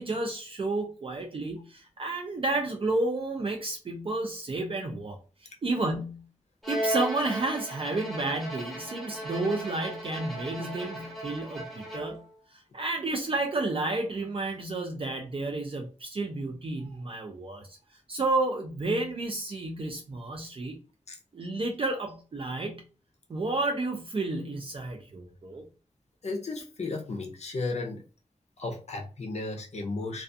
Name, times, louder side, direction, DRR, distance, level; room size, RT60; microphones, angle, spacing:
voice 1, 0.0-5.2 5.6-6.3 6.7-12.2 12.5-17.8 18.1-20.8 21.3-22.8 23.3-25.6, right 2 dB, 45° right, 2 dB, 0.4 m, -31 dB
Bowed string instrument, 6.6-12.3, right 1 dB, ahead, 0.7 m, -36 dB
voice 2, 26.2-28.0 28.6-30.2, left 3 dB, 60° left, 2 dB, 0.6 m, -34 dB
2.4 x 2.3 x 2.5 m, 0.35 s
wide cardioid pair, 115°, 13 cm